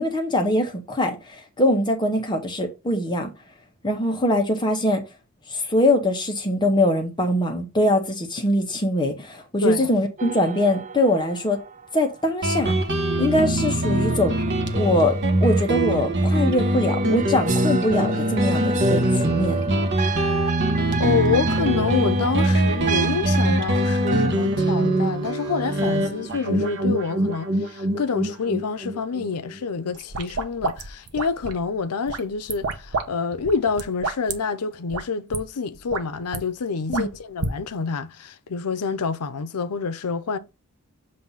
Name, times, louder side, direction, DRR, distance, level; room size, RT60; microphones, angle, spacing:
voice 1, 0.0-3.3 3.8-5.0 5.5-11.6 11.9-12.7 13.2-14.3 14.7-15.1 15.4-19.7 36.9-37.1, left 1 dB, 20° left, 0.9 m, -22 dB
sound 1, 10.2-12.6 13.1-24.3, right 4 dB, 35° right, 0.4 m, -32 dB
Guitar, 12.4-29.6, right 1 dB, 50° right, 1.0 m, -23 dB
voice 2, 21.0-40.4, left 5 dB, 90° left, 0.6 m, -27 dB
sound 2, 29.9-31.6 32.1-33.1 33.3-34.3 34.9-35.0 35.3-35.4 35.7-36.4 36.9-37.5, right 3 dB, 85° right, 0.9 m, -29 dB
7.6 x 2.7 x 5.5 m
head